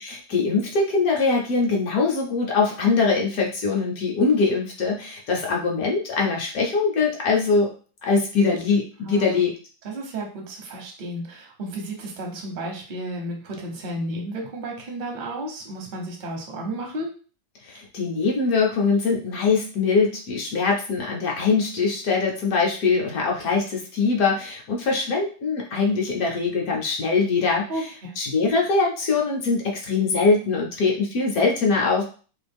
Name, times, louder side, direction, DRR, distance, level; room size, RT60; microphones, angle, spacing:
voice 1, 0.0-7.7 8.0-9.5 17.6-27.6 28.2-32.0, left 4 dB, 65° left, -1 dB, 1.0 m, -22 dB
voice 2, 9.0-9.4 9.8-17.1 27.7-28.1, right 1 dB, 55° right, 1 dB, 0.5 m, -33 dB
3.0 x 2.4 x 3.4 m, 0.39 s
omnidirectional pair, 2.0 m